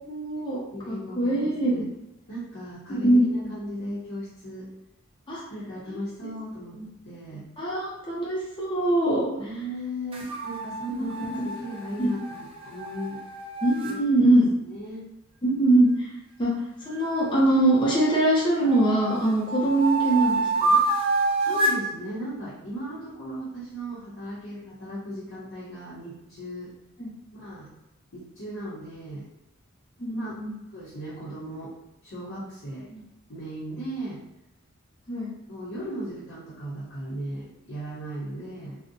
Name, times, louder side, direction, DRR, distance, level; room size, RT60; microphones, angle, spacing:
voice 1, 0.0-0.6 0.9-1.8 2.9-3.3 5.3-5.4 5.9-6.3 7.6-9.5 11.2-11.3 12.0-12.1 13.6-14.5 15.4-16.1 16.4-16.5 16.9-20.8 27.0-27.1 30.0-30.5 32.9-33.0 35.1-35.3, right 1 dB, 25° left, -6 dB, 0.5 m, -23 dB
voice 2, 0.7-1.8 2.3-4.7 5.5-6.8 7.0-7.5 9.4-13.2 13.8-15.1 19.5-19.7 21.4-26.7 27.3-27.7 28.1-29.3 30.1-30.4 30.7-31.7 32.0-32.9 33.3-34.2 35.5-38.8, right 1 dB, 65° left, -9 dB, 0.7 m, -37 dB
sound 1, 10.1-14.0 16.9-18.2 18.7-21.9, right 3 dB, 25° right, 0.3 m, -28 dB
2.5 x 2.1 x 2.6 m, 0.88 s
head